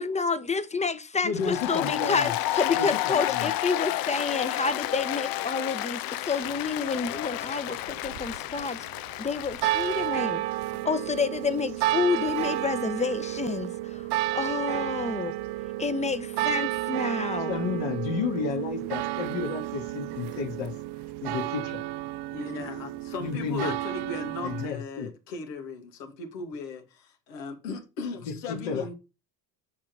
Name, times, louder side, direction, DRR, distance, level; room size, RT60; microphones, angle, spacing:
voice 1, 0.0-8.9 9.2-10.4 10.8-15.3 15.8-17.5, left 4 dB, 15° left, 0.8 m, -29 dB
voice 2, 1.2-2.3 2.7-3.5 17.5-20.7 21.2-21.8 23.2-23.7 24.4-25.1 28.5-28.9, left 5 dB, 65° left, 1.9 m, -31 dB
Applause, 1.4-10.1, left 15 dB, 45° left, 0.5 m, -31 dB
sound 1, 6.4-24.7, right 16 dB, 55° right, 0.6 m, -32 dB
voice 3, 22.3-28.9, left 4 dB, 85° left, 1.7 m, -37 dB
8.5 x 3.1 x 6.5 m
supercardioid pair, 80°, 49 cm